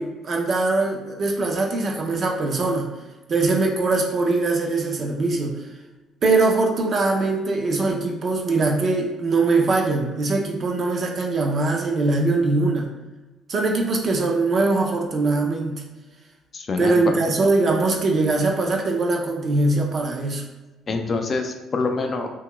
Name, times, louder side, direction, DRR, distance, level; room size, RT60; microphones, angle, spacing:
voice 1, 0.0-2.9 3.3-5.5 6.2-12.9 13.5-15.8 16.8-20.4, right 3 dB, 40° right, 1 dB, 0.5 m, -22 dB
voice 2, 16.5-17.2 20.9-22.3, left 3 dB, 35° left, 4 dB, 0.3 m, -25 dB
2.8 x 2.3 x 2.9 m, 1.1 s
cardioid pair, 115°, 0 cm